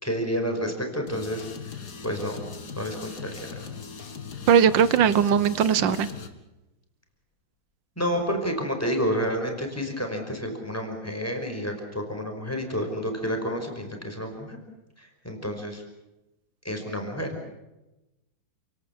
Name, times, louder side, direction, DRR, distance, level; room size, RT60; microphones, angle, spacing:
voice 1, 0.0-1.5 2.0-2.5 2.7-3.7 8.0-14.6 15.0-15.8 16.6-17.4, equal, 5° left, 4 dB, 5.3 m, -30 dB
sound 1, 1.1-6.3, left 5 dB, 55° left, 2.6 m, -39 dB
voice 2, 4.5-6.1, right 8 dB, 70° right, 15 dB, 1.8 m, -19 dB
29.5 x 18.5 x 7.3 m, 0.98 s
omnidirectional pair, 2.2 m